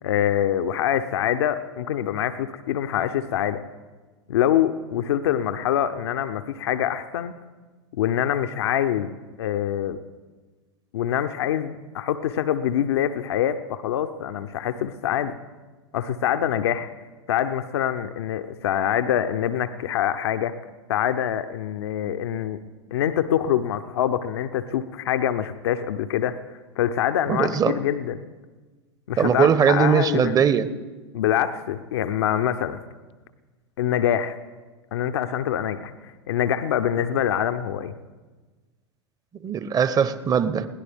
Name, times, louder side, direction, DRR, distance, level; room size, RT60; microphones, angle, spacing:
voice 1, 0.0-3.6 4.3-7.3 8.0-9.1 9.4-10.0 10.9-15.3 15.9-16.9 17.3-20.5 20.9-22.6 22.9-26.4 26.8-28.2 29.1-30.3 31.1-32.8 33.8-34.4 34.9-37.9, left 10 dB, 65° left, 10 dB, 0.7 m, -25 dB
voice 2, 27.3-27.8 29.2-30.7 39.4-40.7, right 7 dB, 25° right, 13 dB, 1.0 m, -20 dB
21.5 x 17.0 x 3.6 m, 1.3 s
figure-of-eight pair, 90°, 14 cm